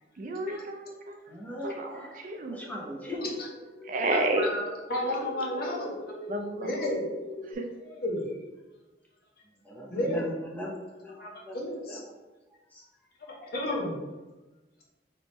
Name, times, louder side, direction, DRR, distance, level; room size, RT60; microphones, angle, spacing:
voice 1, 0.2-1.2 1.6-2.6 3.9-4.5 5.1-5.2 6.3-6.8 7.5-7.7, right 2 dB, 45° right, 5 dB, 0.4 m, -31 dB
voice 2, 1.3-2.2 2.5-3.3 9.6-12.0 12.7-12.8 13.2-13.3, equal, 10° left, -2 dB, 0.7 m, -39 dB
sound 1, 2.6-7.5, left 2 dB, 80° left, 1.0 m, -42 dB
voice 3, 4.1-4.6 4.9-5.9 6.6-7.0 7.8-8.3 9.9-10.3 11.2-12.0 13.3-14.0, left 1 dB, 55° left, -2 dB, 1.0 m, -32 dB
3.5 x 3.0 x 4.1 m, 1.1 s
head